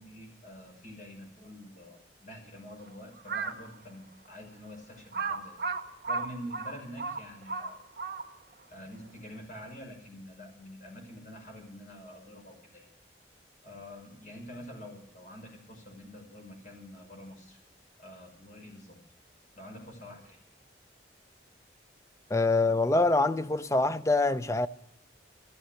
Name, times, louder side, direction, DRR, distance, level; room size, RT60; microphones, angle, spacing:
voice 1, 0.0-5.6 6.1-7.8 8.7-12.9 13.6-17.6 18.0-19.0 19.5-20.4, equal, 45° left, 6.2 m, -46 dB
Crow, 3.2-3.7 4.3-4.4 5.1-8.5, right 4 dB, 55° right, 1.7 m, -34 dB
voice 2, 22.3-24.7, left 2 dB, 15° left, 0.6 m, -25 dB
15.0 x 14.5 x 6.6 m
head